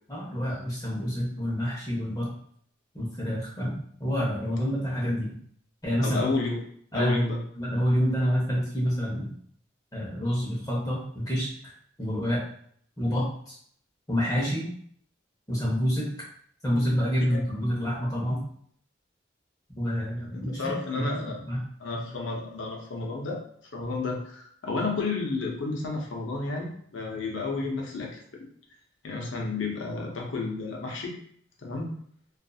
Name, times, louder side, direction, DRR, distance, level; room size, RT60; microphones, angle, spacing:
voice 1, 0.1-2.3 2.9-5.3 5.8-6.2 6.9-7.3 7.6-9.3 9.9-11.7 12.0-12.4 13.0-13.6 14.1-14.7 15.5-16.1 16.6-18.4 19.7-21.2 21.5-21.6, equal, 20° left, -5 dB, 0.9 m, -28 dB
voice 2, 6.0-6.6 6.9-7.4 17.2-17.4 20.3-21.4 21.8-23.4 23.7-28.2 29.0-31.1 31.6-31.9, left 3 dB, 85° left, -1 dB, 0.6 m, -31 dB
2.7 x 2.4 x 2.3 m, 0.63 s
head